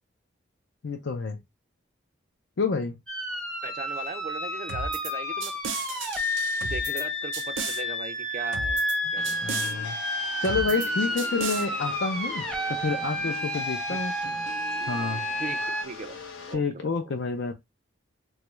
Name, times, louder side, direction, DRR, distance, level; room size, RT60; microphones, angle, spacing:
voice 1, 0.8-1.4 2.6-3.0 9.0-9.1 9.4-10.0 10.4-12.4 12.7-14.1 14.9-15.2 16.5-17.5, left 4 dB, 70° left, 0.5 m, -29 dB
sound 1, 3.1-15.8, left 1 dB, 5° left, 0.7 m, -31 dB
voice 2, 3.6-5.5 6.6-8.8 9.1-9.4 13.9-14.0 15.4-16.2 16.5-16.8, right 4 dB, 40° right, 0.3 m, -38 dB
sound 2, 4.7-5.1 5.4-7.0 7.3-7.8 8.5-9.0 9.2-9.7 10.4-10.9 11.2-11.6, right 5 dB, 80° right, 0.6 m, -34 dB
sound 3, 9.2-16.5, left 3 dB, 85° left, 0.9 m, -41 dB
3.0 x 2.4 x 3.0 m
head